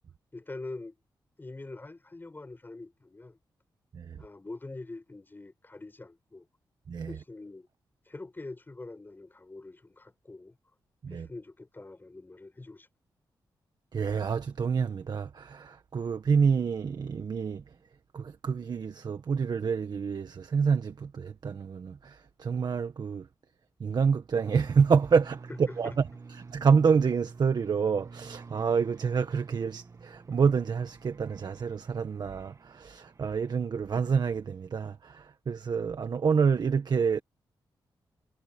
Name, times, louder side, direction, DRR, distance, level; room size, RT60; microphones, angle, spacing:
voice 1, 0.3-1.0 1.4-3.4 4.2-6.5 7.1-7.7 8.1-10.6 11.1-12.9 25.7-26.0, left 2 dB, 25° left, 5.8 m, -44 dB
voice 2, 13.9-17.6 18.1-23.3 23.8-26.1 26.4-37.2, right 6 dB, 60° right, 1.6 m, -27 dB
sound 1, 24.3-33.9, right 4 dB, 40° right, 1.7 m, -48 dB
cardioid pair, 80°, 8 cm